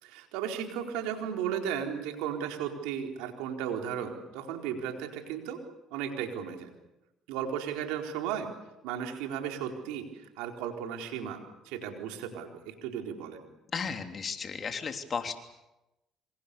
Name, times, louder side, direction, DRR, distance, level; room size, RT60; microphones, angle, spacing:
voice 1, 0.0-5.6 5.9-6.7 7.3-8.5 8.8-13.4, right 8 dB, 90° right, 3 dB, 4.2 m, -35 dB
voice 2, 13.7-15.4, left 5 dB, 40° left, 5 dB, 3.3 m, -34 dB
27.0 x 26.0 x 7.0 m, 0.96 s
supercardioid pair, 80°, 0 cm